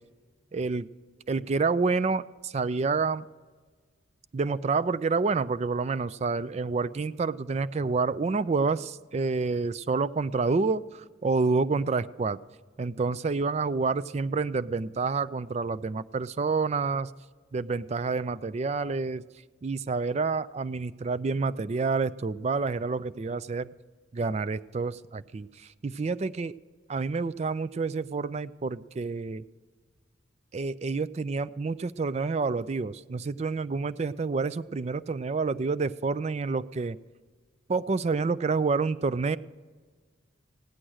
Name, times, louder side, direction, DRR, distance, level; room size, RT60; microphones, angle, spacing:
voice 1, 0.5-0.9 1.3-3.2 4.3-12.4 12.8-17.1 17.5-19.2 19.6-23.7 24.1-26.5 26.9-29.4 30.5-37.0 37.7-39.4, right 4 dB, 30° right, 16 dB, 0.3 m, -28 dB
16.5 x 10.0 x 6.3 m, 1.5 s
head